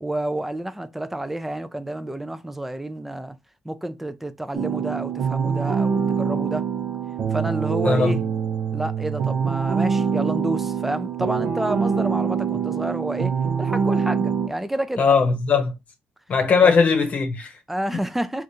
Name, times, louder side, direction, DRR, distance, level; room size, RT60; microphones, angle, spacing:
voice 1, 0.0-3.4 3.6-6.7 7.3-8.2 8.7-15.1 16.6-16.7 17.7-18.4, right 1 dB, 5° right, 0.4 m, -29 dB
sound 1, 4.5-14.5, right 6 dB, 70° right, 0.7 m, -24 dB
voice 2, 7.8-8.2 15.0-15.7 16.3-17.5, left 5 dB, 50° left, 0.9 m, -19 dB
3.4 x 2.5 x 2.6 m
cardioid pair, 80°, 3 cm